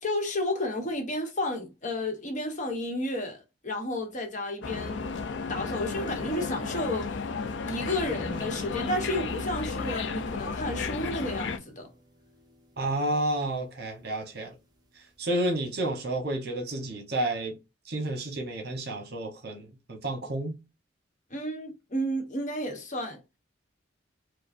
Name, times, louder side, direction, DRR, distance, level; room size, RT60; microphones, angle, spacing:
voice 1, 0.0-5.1 5.5-7.2 7.7-11.9 21.3-23.2, left 1 dB, 40° left, 1.1 m, -32 dB
sound 1, 4.6-11.6, left 4 dB, 65° left, 0.5 m, -33 dB
sound 2, 8.1-14.9 15.2-15.3 15.6-15.8, left 1 dB, 20° right, 0.7 m, -48 dB
voice 2, 12.8-14.5 15.2-17.6 17.9-20.6, right 1 dB, 55° right, 1.0 m, -30 dB
4.8 x 2.2 x 2.6 m
head